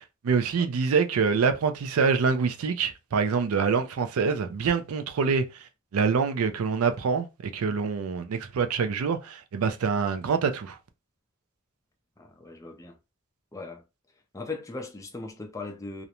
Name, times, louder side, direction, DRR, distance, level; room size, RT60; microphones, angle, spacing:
voice 1, 0.2-5.6 5.9-10.8, right 5 dB, 80° right, 0.4 m, -25 dB
voice 2, 12.2-13.0 13.5-13.8 14.3-16.0, left 3 dB, 15° left, 0.4 m, -38 dB
2.4 x 2.0 x 2.9 m
head